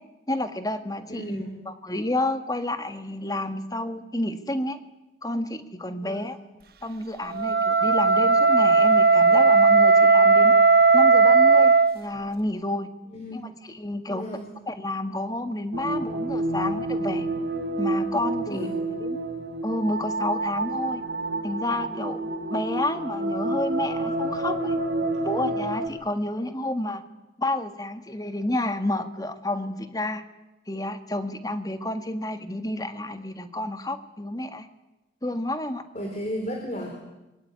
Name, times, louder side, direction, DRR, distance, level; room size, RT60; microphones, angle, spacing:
voice 1, 0.3-1.4 1.7-4.8 5.2-6.4 6.8-10.5 10.9-12.9 13.3-14.3 14.7-17.3 17.8-18.7 19.0-19.2 19.6-21.0 21.4-22.2 22.5-24.8 25.2-27.0 27.4-30.2 30.7-34.7 35.2-35.8, left 1 dB, 20° left, 9 dB, 1.7 m, -30 dB
voice 2, 1.1-1.6 6.0-6.3 13.1-13.5 14.1-14.5 18.5-18.7 35.9-37.0, equal, 40° left, 3 dB, 4.3 m, -34 dB
Wind instrument woodwind instrument, 7.3-12.0, right 4 dB, 55° right, 1.2 m, -17 dB
sound 1, 15.7-25.9, right 2 dB, 85° right, 4.3 m, -29 dB
26.0 x 23.5 x 9.5 m, 1.0 s
head